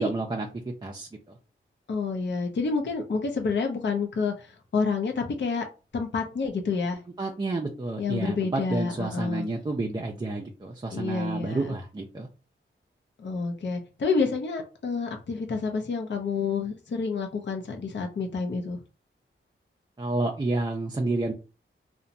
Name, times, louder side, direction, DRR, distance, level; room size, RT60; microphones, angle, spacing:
voice 1, 0.0-1.3 7.2-12.3 20.0-21.3, right 2 dB, 20° right, 0 dB, 0.4 m, -30 dB
voice 2, 1.9-5.6 5.9-7.0 8.0-9.4 10.9-11.6 13.2-18.8, left 4 dB, 60° left, 3 dB, 0.6 m, -29 dB
2.8 x 2.1 x 2.5 m, 0.33 s
wide cardioid pair, 70°, 21 cm